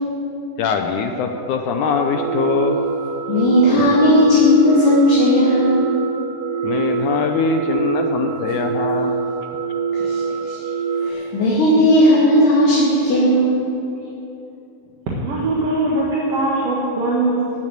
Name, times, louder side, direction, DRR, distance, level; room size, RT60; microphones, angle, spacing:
voice 1, 0.6-2.8 6.6-9.2, left 5 dB, 80° left, 5 dB, 1.8 m, -22 dB
sound 1, 1.9-11.1, right 5 dB, 75° right, 2.7 m, -24 dB
voice 2, 3.3-5.9 10.1-10.2 11.0-13.6, left 1 dB, 65° left, -8 dB, 3.9 m, -15 dB
voice 3, 15.2-17.5, right 2 dB, 55° right, -4 dB, 2.1 m, -21 dB
14.5 x 7.5 x 9.0 m, 2.9 s
omnidirectional pair, 4.2 m